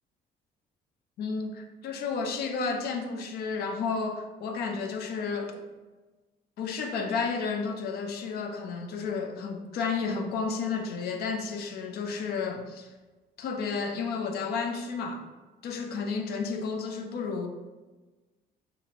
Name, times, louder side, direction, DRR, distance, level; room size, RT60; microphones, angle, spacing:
voice 1, 1.2-5.6 6.6-12.9 13.4-15.2 15.6-17.5, left 5 dB, 65° left, 0.5 m, -32 dB
4.2 x 2.8 x 2.8 m
cardioid pair, 110°, 17 cm